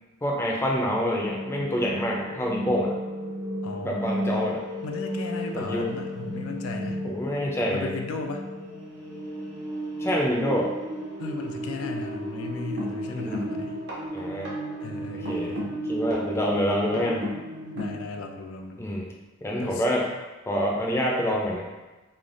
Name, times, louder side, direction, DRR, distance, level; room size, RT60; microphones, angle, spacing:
voice 1, 0.2-2.9 3.8-4.6 5.5-5.9 7.0-8.0 10.0-10.7 13.1-13.5 14.1-14.5 15.3-15.6 15.9-17.2 18.8-19.1 19.4-20.0 20.5-21.7, equal, 10° left, -2 dB, 0.4 m, -26 dB
sound 1, 1.2-18.1, equal, 55° right, 0.6 m, -33 dB
voice 2, 3.6-4.1 4.8-7.0 7.7-8.4 11.2-13.8 14.8-15.7 17.7-18.9 19.6-19.8, left 4 dB, 90° left, 4 dB, 0.3 m, -36 dB
3.2 x 2.2 x 2.5 m, 1.1 s
head